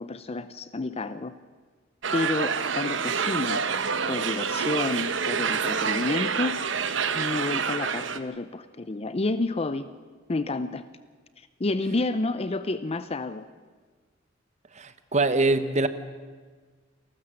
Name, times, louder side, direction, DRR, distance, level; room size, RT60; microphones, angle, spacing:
voice 1, 0.0-1.3 2.1-3.6 4.1-6.6 7.1-9.9 10.3-10.8 11.6-13.5, left 2 dB, 30° left, 13 dB, 0.6 m, -29 dB
sound 1, 2.0-8.2, right 6 dB, 70° right, 1.0 m, -27 dB
voice 2, 14.7-15.9, right 2 dB, 35° right, 12 dB, 1.1 m, -23 dB
28.5 x 13.0 x 7.6 m, 1.5 s
head